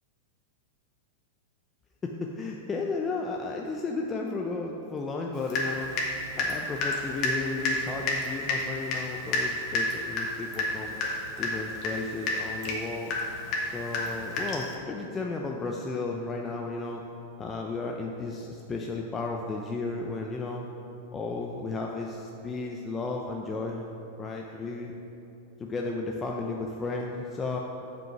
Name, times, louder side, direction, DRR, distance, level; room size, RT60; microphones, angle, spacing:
voice 1, 2.0-5.9 6.4-10.9 11.4-13.2 13.7-17.0 17.4-20.7 21.1-23.8 24.2-24.9 25.6-27.6, left 3 dB, 20° left, 0 dB, 0.6 m, -34 dB
Water tap faucet / Drip, 5.5-6.1 6.4-14.7, left 2 dB, 45° left, 1.7 m, -30 dB
7.5 x 5.3 x 5.9 m, 2.9 s
hypercardioid pair, 110°, 0 cm